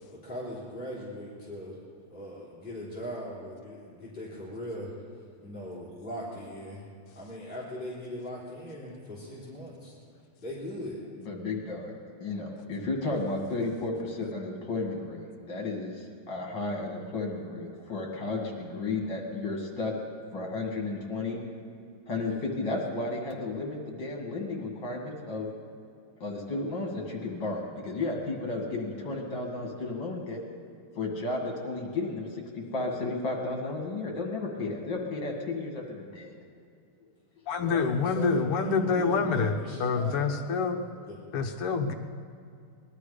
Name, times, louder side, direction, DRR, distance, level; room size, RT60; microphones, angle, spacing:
voice 1, 0.1-1.8 2.1-6.8 7.2-9.9 10.4-11.0 37.6-40.3 41.0-41.1, equal, 20° left, -9 dB, 3.5 m, -40 dB
voice 2, 11.2-19.9 20.3-21.4 22.1-25.5 26.2-30.4 30.9-36.4, left 3 dB, 55° left, 0 dB, 2.8 m, -33 dB
voice 3, 37.5-40.8 41.3-41.9, left 5 dB, 85° left, 5 dB, 2.0 m, -27 dB
20.0 x 12.5 x 5.1 m, 2.4 s
omnidirectional pair, 2.4 m